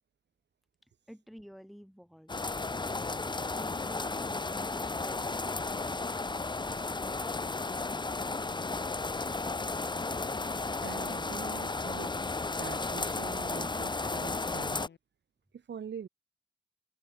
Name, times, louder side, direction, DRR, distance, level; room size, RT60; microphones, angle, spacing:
voice 1, 0.8-2.5 3.4-8.0, equal, ahead, 2.5 m, -51 dB
sound 1, 2.3-14.9, left 3 dB, 25° left, 1.4 m, -34 dB
sound 2, 2.9-15.0, left 7 dB, 85° left, 7.1 m, -59 dB
voice 2, 10.8-12.1 12.4-14.9 15.5-16.1, right 7 dB, 90° right, 4.6 m, -44 dB
open air
wide cardioid pair, 120°, 18 cm